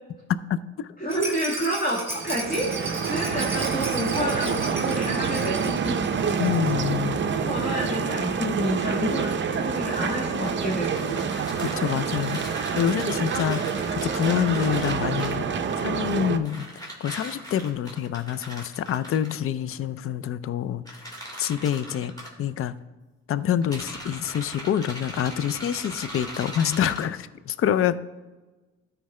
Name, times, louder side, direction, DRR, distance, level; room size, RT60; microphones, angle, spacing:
voice 1, 0.5-0.9 1.3-1.4 6.4-7.2 11.6-12.4 12.7-13.6 13.9-16.7 17.0-21.1 21.4-22.1 22.4-22.7 23.3-28.0, left 9 dB, 45° left, 15 dB, 0.4 m, -26 dB
voice 2, 1.0-6.0 7.2-11.3, equal, 30° left, -3 dB, 1.7 m, -29 dB
Rattle, 1.1-6.8 7.0-7.1 7.4-7.5, right 2 dB, 10° right, 2.4 m, -35 dB
sound 1, 2.1-16.4, right 6 dB, 40° right, 0.6 m, -27 dB
sound 2, 10.4-15.5 16.4-19.3 20.9-22.3 23.6-27.0, equal, 15° left, 2.2 m, -39 dB
13.0 x 4.6 x 3.2 m, 1.2 s
cardioid pair, 90°, 30 cm